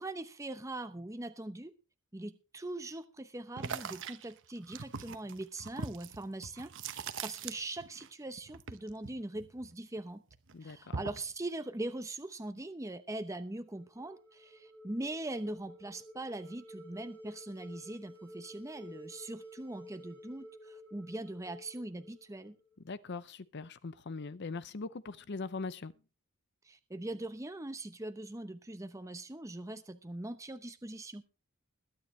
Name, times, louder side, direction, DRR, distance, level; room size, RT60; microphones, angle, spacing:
voice 1, 0.0-1.7 2.1-10.2 10.6-22.6 26.6-31.2, right 2 dB, 15° right, 0.8 m, -41 dB
sound 1, 3.6-8.1 8.3-10.0 10.3-11.3, right 5 dB, 55° right, 1.0 m, -42 dB
voice 2, 10.5-11.0 22.8-25.9, left 4 dB, 50° left, 0.6 m, -41 dB
sound 2, 13.6-22.8, equal, 10° left, 2.5 m, -53 dB
21.5 x 9.5 x 3.2 m
head